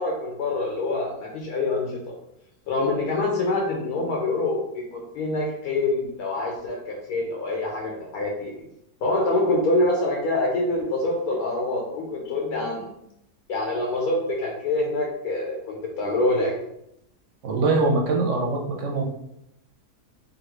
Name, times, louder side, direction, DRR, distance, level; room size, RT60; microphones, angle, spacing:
voice 1, 0.0-2.0 2.7-8.7 9.0-12.9 13.5-16.5, left 2 dB, 80° left, -1 dB, 1.1 m, -25 dB
voice 2, 17.4-19.1, right 3 dB, 65° right, 0 dB, 0.8 m, -23 dB
3.1 x 2.4 x 3.0 m, 0.78 s
omnidirectional pair, 1.6 m